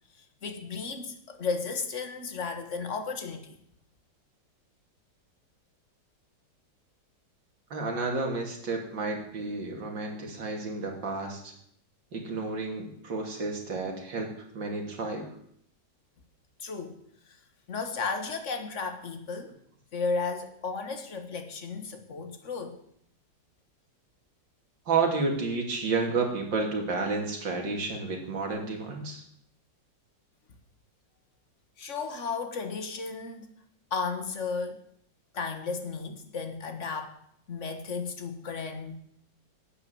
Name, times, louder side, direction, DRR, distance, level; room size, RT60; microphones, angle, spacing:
voice 1, 0.4-3.6 16.6-17.0 17.7-19.5 19.9-22.8 31.8-33.5 33.9-34.8 35.3-37.2 37.5-39.0, left 4 dB, 45° left, 1.7 m, -34 dB
voice 2, 7.7-11.5 12.1-15.3 24.9-29.2, right 4 dB, 80° right, 3.3 m, -31 dB
11.5 x 8.9 x 7.8 m
omnidirectional pair, 2.0 m